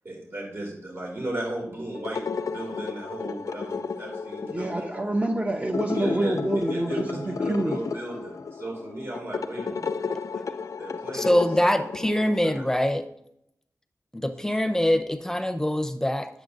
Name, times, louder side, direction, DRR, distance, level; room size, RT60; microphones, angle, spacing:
voice 1, 0.0-4.8 5.9-9.9 10.8-11.3 12.6-12.7, right 1 dB, 50° right, -2 dB, 2.7 m, -35 dB
sound 1, 1.9-12.7, left 5 dB, 75° left, 0.4 m, -33 dB
voice 2, 4.5-7.8, right 1 dB, 25° right, 3 dB, 0.8 m, -27 dB
voice 3, 11.1-13.0 14.1-16.3, left 1 dB, 10° left, 7 dB, 0.8 m, -24 dB
9.9 x 7.0 x 2.6 m, 0.75 s
wide cardioid pair, 65°, 5 cm